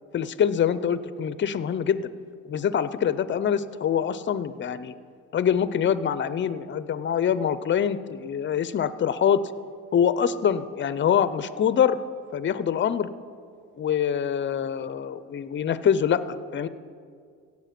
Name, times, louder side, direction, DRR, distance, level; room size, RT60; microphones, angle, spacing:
voice 1, 0.1-2.1 2.4-4.9 5.3-9.4 9.9-12.0 12.3-13.1 13.8-16.7, left 8 dB, 40° left, 15 dB, 0.6 m, -24 dB
16.5 x 7.5 x 5.9 m, 2.2 s
cardioid pair, 90°, 30 cm